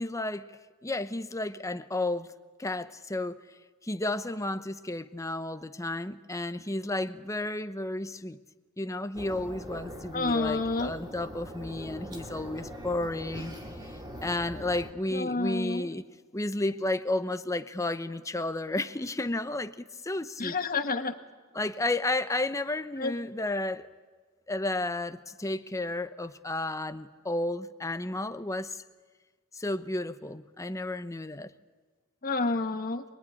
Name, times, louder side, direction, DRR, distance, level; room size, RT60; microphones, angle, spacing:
voice 1, 0.0-2.3 2.6-3.4 3.8-8.4 8.8-13.5 14.2-16.0 16.3-20.6 21.5-23.9 24.5-28.8 29.5-31.5, left 2 dB, 15° left, 0.9 m, -32 dB
sound 1, 9.1-14.9, equal, 20° right, 3.0 m, -42 dB
voice 2, 10.1-10.9 15.1-15.9 20.4-21.1 23.0-23.2 32.2-33.0, left 3 dB, 40° left, 1.5 m, -29 dB
26.5 x 21.5 x 10.0 m
head